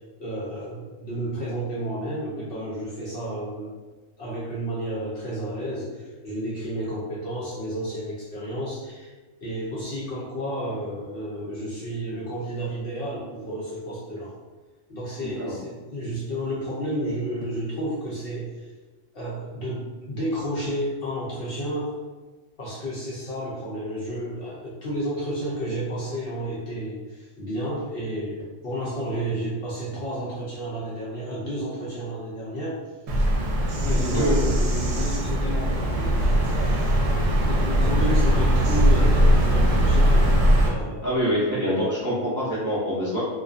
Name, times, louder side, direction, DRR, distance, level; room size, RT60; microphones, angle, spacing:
voice 1, 0.2-3.7 4.2-9.1 9.4-14.3 14.9-18.7 19.1-21.9 22.6-32.8 33.1-33.2 33.8-37.0 37.4-41.1 42.0-42.2, equal, 60° left, -6 dB, 0.7 m, -31 dB
voice 2, 15.2-15.5 34.1-34.3 41.0-43.2, equal, 20° right, -10 dB, 0.5 m, -25 dB
Bird vocalization bird call bird song, 33.1-40.7, equal, 80° right, 0.9 m, -20 dB
2.5 x 2.4 x 2.3 m, 1.3 s
omnidirectional pair, 1.3 m